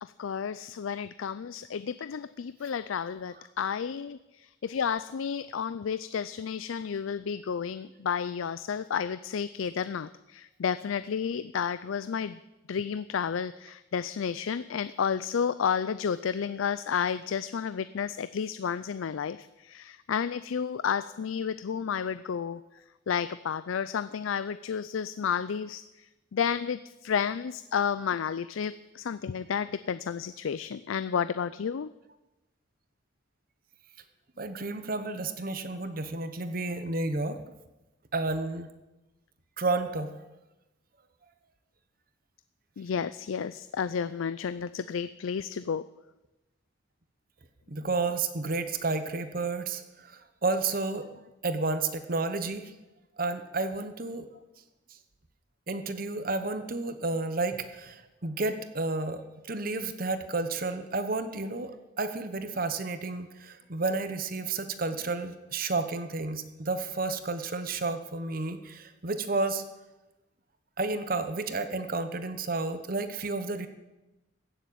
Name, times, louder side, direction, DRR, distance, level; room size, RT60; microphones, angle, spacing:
voice 1, 0.0-12.4 12.7-22.6 23.1-31.9 42.8-45.8, left 7 dB, 85° left, 15 dB, 0.4 m, -31 dB
voice 2, 34.4-37.4 38.1-38.7 39.6-40.1 47.7-51.1 51.4-52.7 53.2-54.3 55.7-69.6 70.8-73.7, right 3 dB, 45° right, 10 dB, 1.0 m, -31 dB
16.0 x 7.3 x 8.6 m, 1.0 s
head